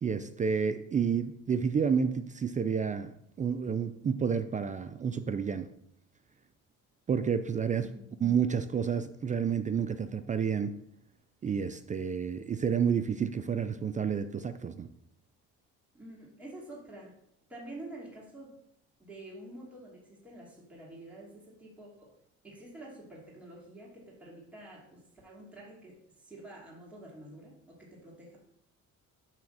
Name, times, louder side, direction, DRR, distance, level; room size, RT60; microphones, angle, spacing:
voice 1, 0.0-5.7 7.1-7.9 8.2-10.7 11.4-14.9, right 6 dB, 25° right, 10 dB, 0.3 m, -30 dB
voice 2, 7.7-8.3 15.9-17.1 17.5-18.6 19.0-22.1 22.4-28.4, right 1 dB, 5° right, -5 dB, 2.5 m, -48 dB
8.9 x 3.5 x 6.5 m, 0.74 s
cardioid pair, 130°, 31 cm